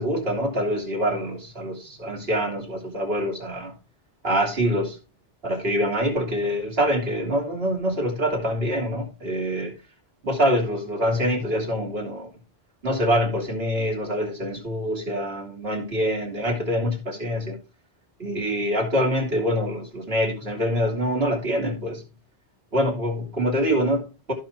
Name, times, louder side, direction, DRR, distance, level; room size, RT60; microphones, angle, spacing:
voice 1, 0.0-3.7 4.2-5.0 5.4-9.7 10.2-12.3 12.8-17.6 18.2-22.0 22.7-24.3, equal, 60° right, 3.3 m, -25 dB
15.5 x 5.5 x 3.1 m
omnidirectional pair, 1.2 m